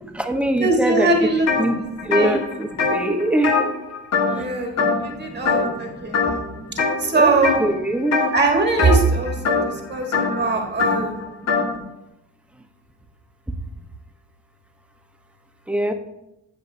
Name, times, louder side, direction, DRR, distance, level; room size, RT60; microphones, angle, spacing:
voice 1, 0.0-3.7 4.3-4.5 4.7-8.2 9.4-10.5 10.8-11.1 11.4-11.9 12.5-12.6 13.5-13.9 15.7-15.9, right 1 dB, 5° right, 4 dB, 1.0 m, -26 dB
voice 2, 0.6-1.5 2.2-2.4 4.2-6.3 7.0-7.5 8.3-11.2, right 3 dB, 35° right, 2 dB, 1.5 m, -21 dB
sound 1, 1.5-1.7 2.0-4.5 4.8-5.2 5.5-5.8 6.1-7.0 7.4-7.7 8.1-11.7, left 4 dB, 60° left, 1.7 m, -22 dB
15.5 x 5.5 x 2.7 m, 0.89 s
cardioid pair, 90°, 30 cm